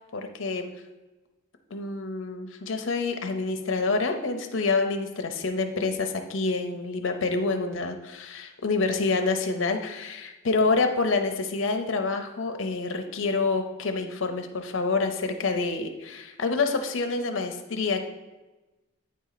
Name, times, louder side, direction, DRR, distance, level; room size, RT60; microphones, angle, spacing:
voice 1, 0.1-0.7 1.7-18.0, left 3 dB, 70° left, 5 dB, 0.6 m, -27 dB
8.7 x 4.2 x 4.0 m, 1.1 s
head